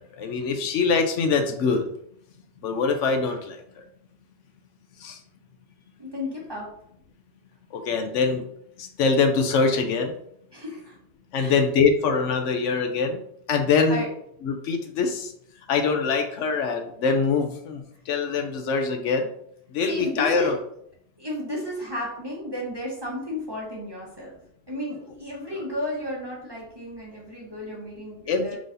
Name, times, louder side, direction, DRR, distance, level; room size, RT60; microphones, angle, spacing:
voice 1, 0.2-1.8 2.6-3.6 5.0-5.2 7.7-8.4 8.8-10.1 11.3-13.2 13.5-14.0 14.4-15.3 15.7-19.3 19.7-20.6 28.3-28.6, left 5 dB, 80° left, 5 dB, 1.0 m, -23 dB
voice 2, 6.0-6.7 10.5-11.0 11.3-11.6 13.9-14.1 19.9-20.6 21.2-24.3 24.7-28.6, left 1 dB, 20° right, -3 dB, 1.0 m, -33 dB
4.7 x 3.9 x 2.6 m, 0.70 s
omnidirectional pair, 1.3 m